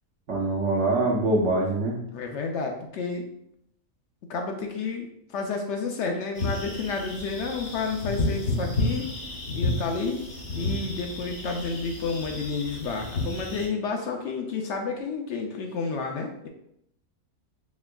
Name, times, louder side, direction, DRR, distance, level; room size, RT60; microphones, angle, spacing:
voice 1, 0.3-2.0, right 2 dB, 60° right, -5 dB, 1.0 m, -24 dB
voice 2, 2.1-3.3 4.3-9.1 9.5-10.2 10.5-16.5, left 4 dB, 65° left, 3 dB, 0.7 m, -30 dB
sound 1, 6.4-13.7, left 2 dB, 50° left, 1.0 m, -31 dB
4.2 x 3.4 x 2.3 m, 0.75 s
omnidirectional pair, 1.5 m